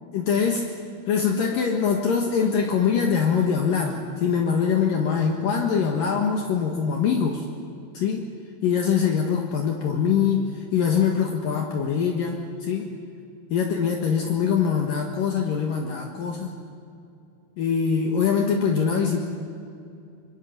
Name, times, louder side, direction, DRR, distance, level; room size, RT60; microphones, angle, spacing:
voice 1, 0.1-0.7 1.1-7.5 7.9-8.3 8.6-12.9 13.5-16.5 17.6-19.3, left 6 dB, 65° left, 1 dB, 3.0 m, -23 dB
25.5 x 24.0 x 7.6 m, 2.5 s
omnidirectional pair, 4.7 m